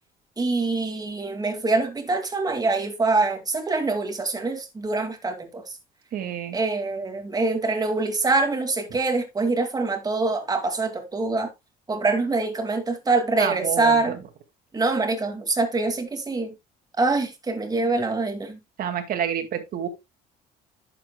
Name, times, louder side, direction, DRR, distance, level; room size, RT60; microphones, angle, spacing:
voice 1, 0.4-5.8 6.5-11.5 11.9-14.2 14.7-16.5 17.0-18.6, right 3 dB, 20° right, 2.3 m, -24 dB
voice 2, 6.1-6.6 13.4-14.2 18.8-19.9, right 9 dB, 60° right, 2.2 m, -28 dB
11.5 x 7.6 x 2.3 m
cardioid pair, 110°, 17 cm